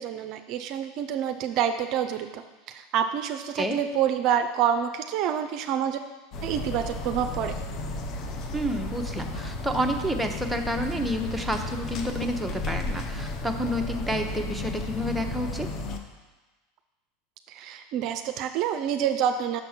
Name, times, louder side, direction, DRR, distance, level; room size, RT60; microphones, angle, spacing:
voice 1, 0.0-2.4 2.7-6.0 6.4-7.5 17.5-19.6, right 9 dB, 55° right, 7 dB, 0.4 m, -27 dB
sound 1, 6.3-16.0, left 2 dB, 45° left, 0.7 m, -33 dB
voice 2, 8.5-15.7, equal, 5° right, 3 dB, 0.7 m, -29 dB
6.4 x 4.4 x 5.7 m, 1.2 s
hypercardioid pair, 90°, 0 cm